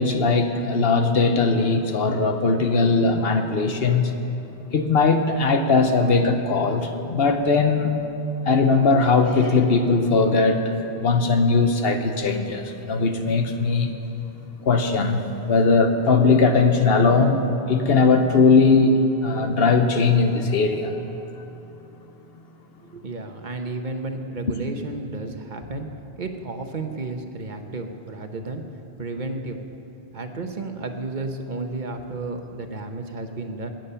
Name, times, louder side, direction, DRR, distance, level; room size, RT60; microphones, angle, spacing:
voice 1, 0.0-4.1 4.7-7.9 8.4-13.9 14.6-18.9 19.2-21.0 21.4-21.5, left 4 dB, 70° left, 7 dB, 1.1 m, -19 dB
voice 2, 22.8-25.9 26.2-28.6 29.0-29.6 30.1-33.7, right 3 dB, 50° right, 5 dB, 1.1 m, -32 dB
20.0 x 9.1 x 5.6 m, 2.9 s
omnidirectional pair, 1.1 m